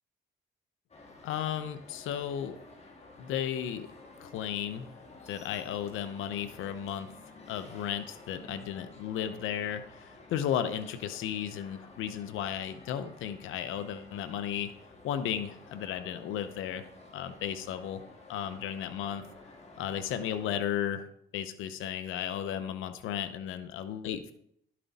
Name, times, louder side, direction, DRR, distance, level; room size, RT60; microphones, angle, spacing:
sound 1, 0.9-20.6, left 2 dB, 35° left, 2.3 m, -52 dB
voice 1, 1.2-2.6 3.2-3.9 4.2-4.9 5.3-7.1 7.5-14.7 15.0-16.9 17.1-19.2 19.8-21.1 21.3-24.3, left 9 dB, 90° left, 10 dB, 0.7 m, -34 dB
11.5 x 7.5 x 4.1 m, 0.71 s
cardioid pair, 90°, 20 cm